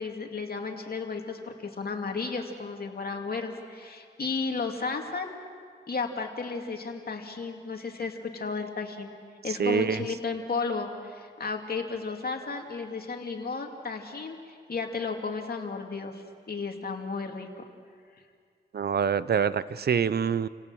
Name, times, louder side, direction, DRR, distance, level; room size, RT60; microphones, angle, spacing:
voice 1, 0.0-5.3 5.9-9.1 9.4-17.7, left 4 dB, 50° left, 3 dB, 2.6 m, -33 dB
voice 2, 9.6-10.0 18.7-20.5, right 7 dB, 55° right, 17 dB, 0.7 m, -25 dB
29.0 x 17.5 x 6.3 m, 2.1 s
cardioid pair, 60°, 20 cm